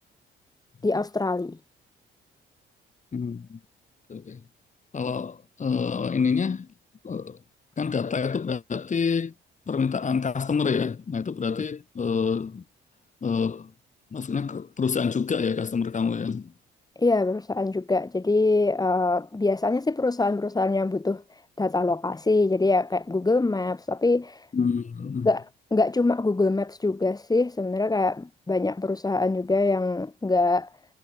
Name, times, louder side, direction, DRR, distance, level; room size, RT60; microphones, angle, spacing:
voice 1, 0.8-1.6 17.0-21.2 21.6-24.4 25.2-25.4 25.7-30.7, left 3 dB, 20° left, 4.7 m, -24 dB
voice 2, 3.1-3.6 4.1-4.4 4.9-6.7 7.0-7.4 7.8-9.3 9.7-12.6 13.2-13.7 14.1-16.5 24.5-25.3, left 5 dB, 40° left, 4.5 m, -27 dB
cardioid pair, 90°, 20 cm